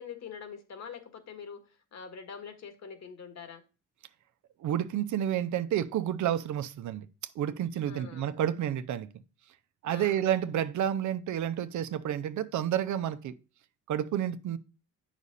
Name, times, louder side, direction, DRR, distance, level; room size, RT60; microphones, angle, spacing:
voice 1, 0.0-1.6 1.9-3.6 7.9-8.3 9.8-10.2, left 6 dB, 60° left, 1.9 m, -44 dB
voice 2, 4.6-7.1 7.4-9.1 9.8-13.3 13.9-14.6, right 10 dB, 75° right, 0.8 m, -30 dB
8.3 x 6.2 x 4.1 m
cardioid pair, 90°, 30 cm